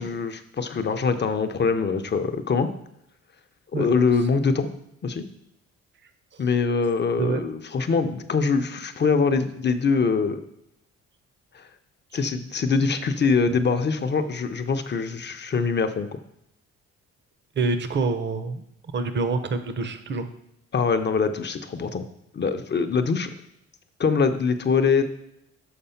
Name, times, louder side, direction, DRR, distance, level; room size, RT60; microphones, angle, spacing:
voice 1, 0.0-2.7 3.7-4.7 5.0-5.2 6.4-10.4 11.5-11.6 12.1-16.1 20.7-22.0 22.3-23.3 24.0-25.0, left 5 dB, 35° left, 8 dB, 0.7 m, -23 dB
voice 2, 17.6-18.6 18.9-20.3, right 4 dB, 35° right, 10 dB, 0.8 m, -26 dB
6.7 x 4.9 x 5.7 m, 0.79 s
cardioid pair, 90°, 30 cm